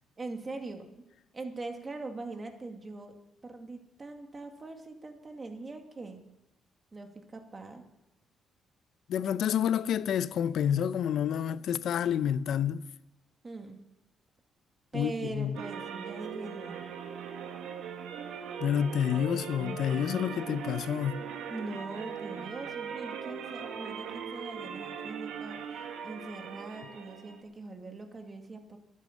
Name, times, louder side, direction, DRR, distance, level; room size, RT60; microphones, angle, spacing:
voice 1, 0.2-0.9 1.3-3.1 3.4-6.2 6.9-7.8 13.4-13.8 14.9-17.0 21.5-28.8, right 3 dB, 30° right, 2.1 m, -42 dB
voice 2, 9.1-12.8 14.9-15.6 18.6-21.2, left 9 dB, 70° left, 0.6 m, -29 dB
sound 1, 15.5-27.4, right 7 dB, 85° right, 1.5 m, -40 dB
11.5 x 9.5 x 8.5 m
cardioid pair, 90°, 0 cm